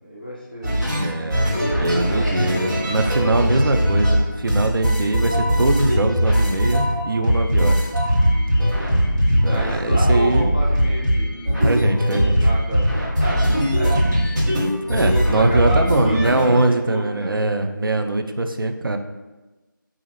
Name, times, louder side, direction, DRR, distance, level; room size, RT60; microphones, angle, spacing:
voice 1, 0.0-0.8 1.7-2.4 9.5-11.3 12.4-13.4 13.7-14.0 15.1-17.4, right 1 dB, 25° left, -5 dB, 0.5 m, -30 dB
sound 1, 0.6-4.2 4.5-16.6, equal, 55° right, 1.1 m, -20 dB
voice 2, 0.9-7.9 9.3-10.5 11.6-12.5 14.9-19.0, right 2 dB, 75° right, 6 dB, 0.4 m, -22 dB
2.9 x 2.4 x 3.1 m, 1.1 s
figure-of-eight pair, 170°, 11 cm